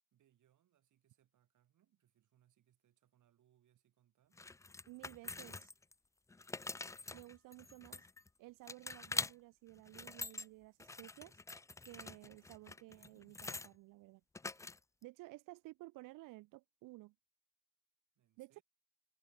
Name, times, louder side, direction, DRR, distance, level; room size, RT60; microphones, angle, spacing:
voice 1, 0.1-4.4 18.2-18.6, right 11 dB, 65° right, 6.2 m, -75 dB
sound 1, 4.4-5.9 6.3-8.3 8.7-9.3 9.8-10.5 10.8-13.7 14.4-15.0, left 3 dB, 10° left, 0.3 m, -45 dB
voice 2, 4.9-5.7 7.1-8.1 8.4-11.4 11.8-14.2 15.0-17.1 18.4-18.6, right 20 dB, 80° right, 0.5 m, -55 dB
cardioid pair, 110°, 32 cm